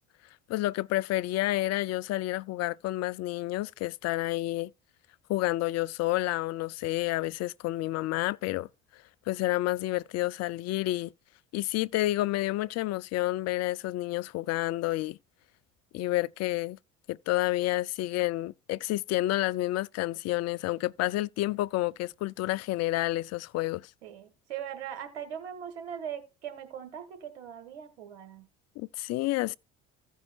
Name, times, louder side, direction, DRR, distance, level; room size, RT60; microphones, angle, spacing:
voice 1, 0.5-4.7 5.3-8.7 9.3-11.1 11.5-15.2 15.9-16.8 17.1-23.9 28.8-29.6, left 17 dB, 50° left, 0.4 m, -29 dB
voice 2, 24.0-28.4, right 9 dB, 85° right, 1.6 m, -40 dB
15.5 x 5.5 x 2.3 m
hypercardioid pair, 70°, 33 cm